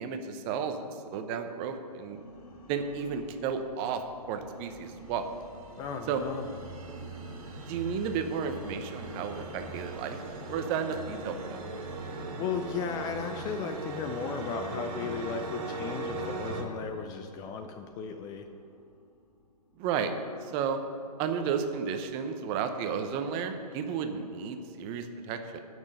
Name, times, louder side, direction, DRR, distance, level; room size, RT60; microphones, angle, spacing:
voice 1, 0.0-2.2 2.7-4.0 4.3-5.3 6.1-6.2 7.7-10.2 10.5-11.7 19.8-20.1 20.4-20.8 21.2-25.6, right 6 dB, 25° right, 7 dB, 0.9 m, -33 dB
sound 1, 1.6-20.3, left 2 dB, 60° left, 2.6 m, -54 dB
sound 2, 5.1-16.6, right 3 dB, 55° right, 2.1 m, -39 dB
voice 2, 5.8-6.9 12.4-18.5, left 6 dB, 20° left, 6 dB, 0.5 m, -36 dB
16.0 x 6.3 x 5.4 m, 2.5 s
hypercardioid pair, 130°, 20 cm